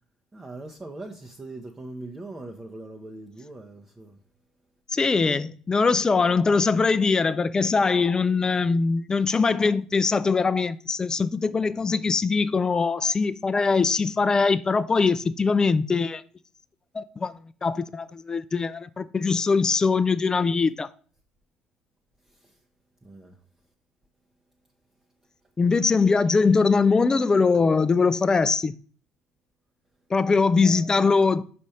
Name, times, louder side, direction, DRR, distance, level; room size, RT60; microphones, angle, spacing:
voice 1, 0.3-4.2 22.2-22.6 23.0-23.4 30.6-31.0, right 2 dB, 20° right, 0.8 m, -41 dB
voice 2, 4.9-16.2 16.9-17.4 17.6-20.9 25.6-28.7 30.1-31.4, left 4 dB, 25° left, 0.4 m, -22 dB
5.2 x 4.3 x 4.9 m
hypercardioid pair, 65°, 3 cm